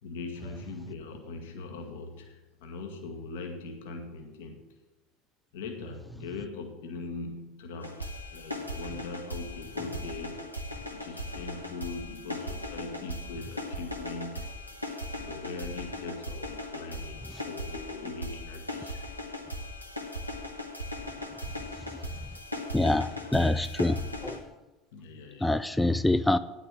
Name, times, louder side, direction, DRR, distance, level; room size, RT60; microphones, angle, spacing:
voice 1, 0.0-4.7 5.5-10.5 10.9-14.5 15.2-19.0 24.9-25.5, left 3 dB, 65° left, 4 dB, 1.4 m, -41 dB
sound 1, 7.8-24.4, left 1 dB, 90° left, 1.0 m, -38 dB
voice 2, 22.7-24.4 25.4-26.4, left 1 dB, 5° left, 13 dB, 0.4 m, -25 dB
9.8 x 6.1 x 7.4 m, 1.1 s
figure-of-eight pair, 70°, 0 cm